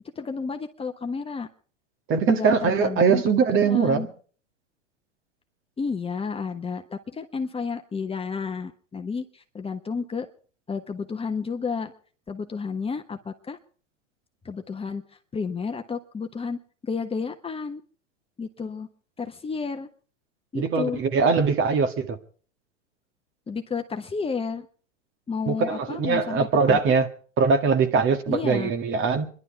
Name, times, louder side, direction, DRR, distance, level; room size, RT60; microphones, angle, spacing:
voice 1, 0.1-1.5 2.3-3.2 3.5-4.1 5.8-10.3 10.7-11.9 12.3-13.6 14.4-15.0 15.3-17.8 18.4-18.9 19.2-19.9 20.5-21.0 23.5-24.7 25.3-27.0 28.3-28.7, left 5 dB, 15° left, 1.2 m, -31 dB
voice 2, 2.1-4.1 20.5-22.2 25.5-27.1 27.4-29.3, right 5 dB, 35° right, 2.0 m, -22 dB
26.0 x 11.5 x 4.6 m
hypercardioid pair, 100°, 36 cm